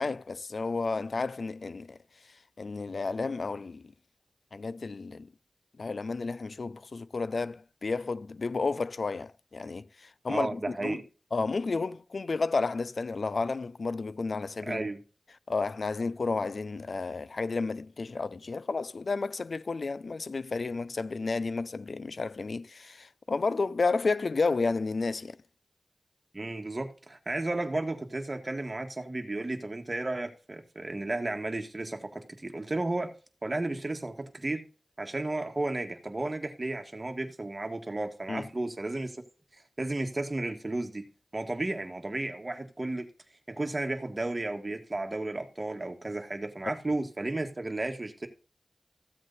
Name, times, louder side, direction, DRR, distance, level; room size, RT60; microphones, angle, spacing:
voice 1, 0.0-2.0 2.6-3.9 4.5-5.3 5.8-11.0 11.3-14.9 15.5-25.4 38.3-38.5, left 4 dB, 80° left, 0.4 m, -32 dB
voice 2, 10.3-11.0 14.6-15.0 26.3-33.1 33.4-34.6 35.0-39.2 39.8-43.1 43.5-48.3, right 2 dB, 40° right, 1.8 m, -33 dB
14.5 x 7.5 x 4.1 m
wide cardioid pair, 50°, 0 cm